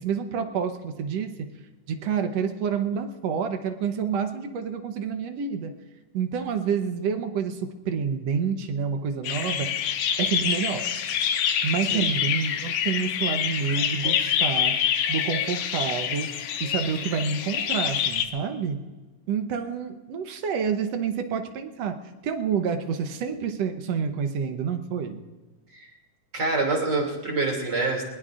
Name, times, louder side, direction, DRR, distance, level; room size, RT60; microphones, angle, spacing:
voice 1, 0.0-1.3 1.9-5.7 6.1-9.7 10.2-10.9 11.6-14.8 15.1-16.3 16.6-18.8 19.3-22.0 22.2-25.2, right 6 dB, 65° right, 7 dB, 1.9 m, -28 dB
sound 1, 9.2-18.3, left 9 dB, 80° left, 2.3 m, -26 dB
voice 2, 26.3-28.0, right 3 dB, 35° right, 1 dB, 3.1 m, -26 dB
21.0 x 21.0 x 2.5 m, 1.2 s
omnidirectional pair, 3.5 m